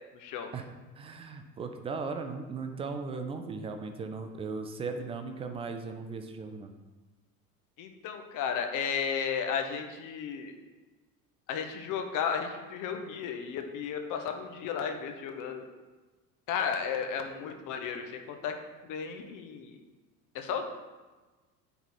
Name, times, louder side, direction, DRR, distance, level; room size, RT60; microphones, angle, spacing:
voice 1, 0.1-0.5 7.8-10.5 11.5-15.7 16.5-18.5 18.8-19.8 20.3-20.7, left 7 dB, 40° left, 5 dB, 1.1 m, -34 dB
voice 2, 1.0-6.7, right 4 dB, 15° right, 6 dB, 0.3 m, -37 dB
9.3 x 4.2 x 4.4 m, 1.2 s
figure-of-eight pair, 70°, 49 cm